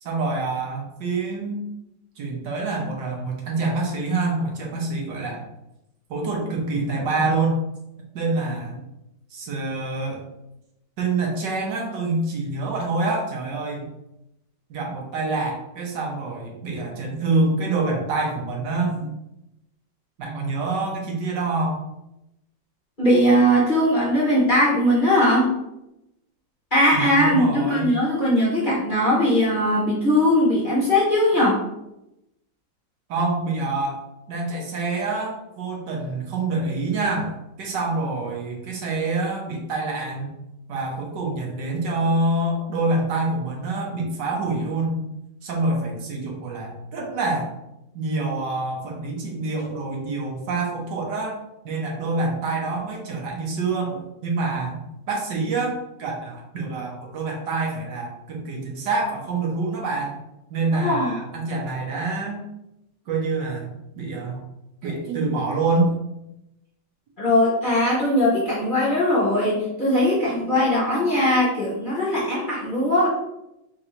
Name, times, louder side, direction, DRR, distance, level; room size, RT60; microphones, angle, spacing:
voice 1, 0.0-1.7 2.2-5.4 6.1-7.6 8.1-8.8 9.3-10.2 11.0-13.9 14.7-19.1 20.2-21.8 26.9-27.9 33.1-34.0 34.3-40.3 40.7-45.0 45.4-47.5 47.9-51.4 51.6-54.8 55.1-60.2 60.5-62.4 63.1-64.4 64.8-65.9, right 3 dB, 70° right, -1 dB, 1.5 m, -26 dB
voice 2, 23.0-25.5 26.7-31.6 60.7-61.1 67.2-73.1, left 1 dB, 35° left, -7 dB, 1.0 m, -20 dB
3.8 x 2.6 x 4.3 m, 0.88 s
omnidirectional pair, 2.0 m